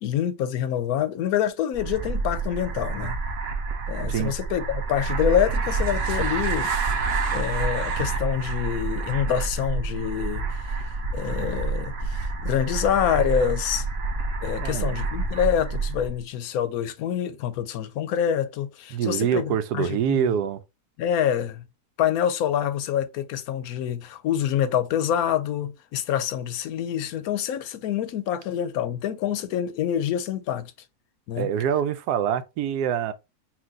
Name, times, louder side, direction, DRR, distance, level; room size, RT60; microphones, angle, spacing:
voice 1, 0.0-3.2 3.9-6.7 7.3-13.9 14.4-20.3 21.0-21.6 22.0-30.7 31.3-31.5, left 9 dB, 70° left, 1.0 m, -26 dB
sound 1, 1.7-16.2, right 4 dB, 55° right, 0.7 m, -28 dB
voice 2, 14.6-15.0 18.9-20.6 31.4-33.1, right 8 dB, 85° right, 1.1 m, -25 dB
5.8 x 2.5 x 2.7 m
omnidirectional pair, 1.7 m